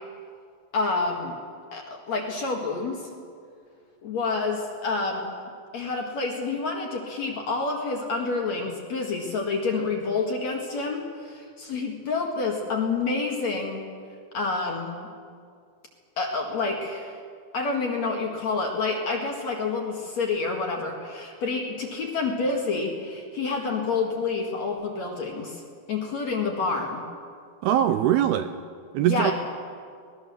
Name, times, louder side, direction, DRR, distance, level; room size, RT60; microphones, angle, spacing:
voice 1, 0.7-1.4 1.7-3.1 4.0-5.3 5.7-13.8 14.3-15.0 16.2-17.2 17.5-25.6 25.9-27.0 29.0-29.3, left 3 dB, 50° left, 1 dB, 2.5 m, -28 dB
voice 2, 27.6-28.6 28.9-29.3, right 11 dB, 80° right, 9 dB, 2.4 m, -22 dB
24.0 x 19.0 x 7.1 m, 2.2 s
omnidirectional pair, 5.1 m